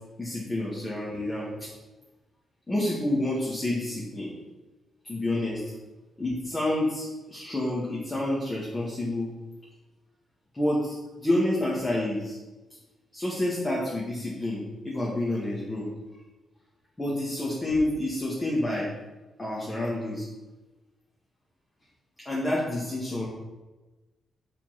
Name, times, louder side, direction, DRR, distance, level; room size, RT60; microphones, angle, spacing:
voice 1, 0.2-1.7 2.7-4.3 5.1-5.7 6.2-9.3 10.5-12.4 13.1-15.9 17.0-18.9 19.4-20.3 22.3-23.3, left 1 dB, 20° left, -6 dB, 1.9 m, -28 dB
7.6 x 4.4 x 5.9 m, 1.1 s
cardioid pair, 105°, 0 cm